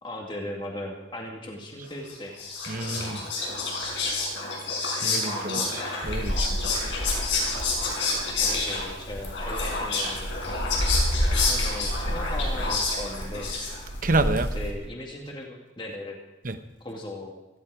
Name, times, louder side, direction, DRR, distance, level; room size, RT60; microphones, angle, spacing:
voice 1, 0.0-2.3 8.3-10.3 11.2-13.5 14.5-16.2 16.8-17.3, left 1 dB, 25° left, 0 dB, 2.1 m, -38 dB
Whispering, 2.1-14.0, left 3 dB, 70° left, 6.2 m, -29 dB
voice 2, 2.7-3.2 5.0-6.5 14.0-14.5 16.4-16.6, right 2 dB, 45° right, 9 dB, 0.9 m, -28 dB
sound 1, 6.0-14.7, equal, 90° left, 4.2 m, -30 dB
17.0 x 15.5 x 4.9 m, 0.98 s
head